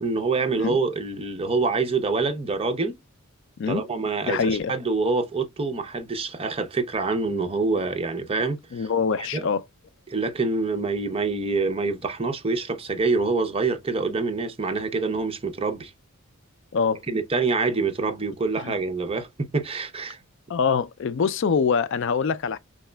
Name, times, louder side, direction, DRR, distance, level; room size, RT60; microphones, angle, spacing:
voice 1, 0.0-2.9 3.7-8.8 9.2-9.5 10.1-15.9 17.1-20.2, right 3 dB, 25° right, 0.7 m, -26 dB
voice 2, 4.3-4.7 8.7-9.6 16.7-17.0 18.6-18.7 20.5-22.6, left 5 dB, 55° left, 0.4 m, -24 dB
4.8 x 3.9 x 2.2 m
head